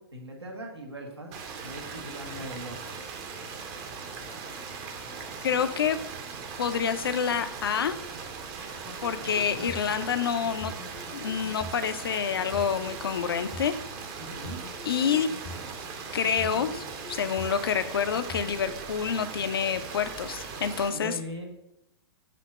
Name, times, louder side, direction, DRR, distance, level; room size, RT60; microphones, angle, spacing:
voice 1, 0.0-1.3 1.6-2.8 9.2-9.7 14.2-14.6 20.9-21.5, equal, 80° right, 1 dB, 1.5 m, -40 dB
sound 1, 1.3-20.9, right 5 dB, 30° right, 0.8 m, -39 dB
voice 2, 5.4-6.0 6.6-8.0 9.0-10.7 11.1-13.7 14.8-15.3 16.1-21.2, left 7 dB, 65° left, 10 dB, 0.5 m, -28 dB
sound 2, 8.8-9.9 10.4-11.7 12.4-13.7 14.3-15.7 16.2-17.6 18.1-18.8, left 1 dB, 15° left, 0.6 m, -43 dB
7.6 x 2.8 x 5.1 m, 0.84 s
figure-of-eight pair, 110°, 13 cm